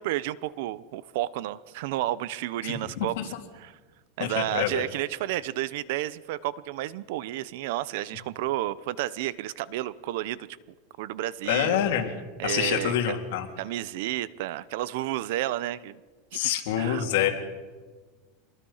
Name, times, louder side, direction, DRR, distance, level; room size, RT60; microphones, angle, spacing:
voice 1, 0.0-3.1 3.5-3.8 4.2-10.5 11.0-11.8 12.4-13.2 13.6-16.0 16.3-16.4 16.8-17.3, right 14 dB, 65° right, 19 dB, 0.8 m, -31 dB
voice 2, 2.6-3.2 4.2-4.9 11.5-12.1 12.4-13.5 16.3-17.3, left 10 dB, 70° left, 3 dB, 3.3 m, -26 dB
26.5 x 21.5 x 5.7 m, 1.4 s
supercardioid pair, 150°, 0 cm